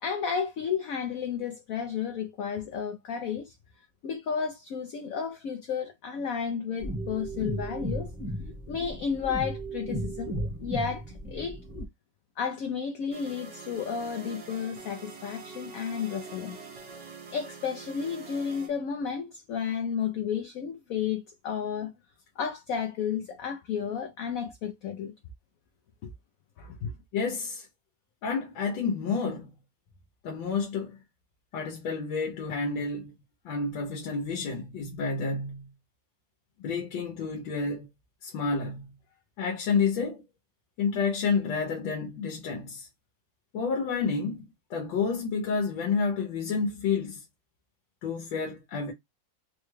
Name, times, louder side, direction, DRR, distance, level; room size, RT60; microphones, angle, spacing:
voice 1, 0.0-3.5 4.0-8.1 8.7-11.6 12.4-16.5 17.3-21.9 22.4-25.1 26.6-26.9, left 7 dB, 65° left, 0.8 m, -32 dB
sound 1, 6.8-11.9, right 1 dB, 20° right, 1.0 m, -35 dB
sound 2, 13.1-18.7, right 5 dB, 50° right, 1.1 m, -45 dB
voice 2, 27.1-27.7 28.2-29.5 30.2-31.0 31.5-33.1 33.4-35.7 36.6-37.9 38.2-38.9 39.4-40.2 40.8-42.9 43.5-47.2 48.0-48.9, left 5 dB, 85° left, 1.5 m, -30 dB
4.4 x 2.3 x 3.1 m
omnidirectional pair, 2.1 m